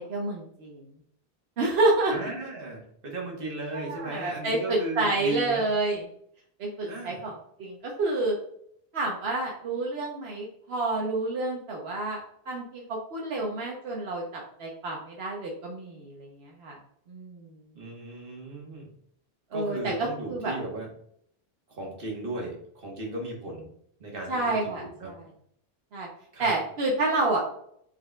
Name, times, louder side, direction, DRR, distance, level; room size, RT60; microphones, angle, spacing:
voice 1, 0.1-0.8 1.6-2.1 3.7-6.1 6.6-7.3 7.6-8.4 8.9-16.8 17.1-17.6 19.5-20.5 24.3-25.2 25.9-26.1 26.4-27.4, right 2 dB, 85° right, -2 dB, 1.1 m, -29 dB
voice 2, 2.1-5.6 6.8-7.2 17.7-18.9 19.5-20.9 21.7-23.7 24.0-25.1 26.3-26.6, right 2 dB, 60° right, -1 dB, 1.5 m, -36 dB
4.7 x 4.5 x 2.2 m, 0.67 s
omnidirectional pair, 1.0 m